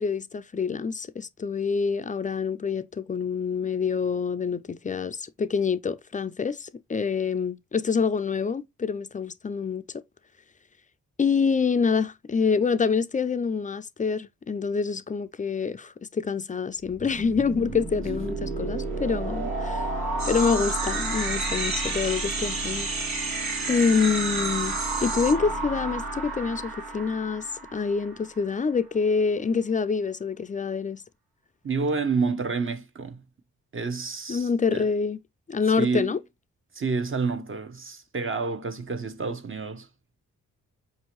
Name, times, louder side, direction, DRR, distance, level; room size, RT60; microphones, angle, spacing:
voice 1, 0.0-9.8 11.2-19.9 20.2-23.2 23.7-27.5 27.7-31.0 34.3-35.2 35.5-36.2, left 5 dB, 25° left, 0.4 m, -26 dB
sound 1, 16.8-28.5, right 2 dB, 80° right, 1.3 m, -32 dB
sound 2, 20.2-25.3, right 3 dB, 55° right, 1.4 m, -32 dB
voice 2, 31.6-33.2 33.7-34.8 35.8-36.1 36.7-39.9, right 4 dB, 35° right, 0.8 m, -29 dB
5.0 x 2.7 x 2.9 m
supercardioid pair, 50°, 35 cm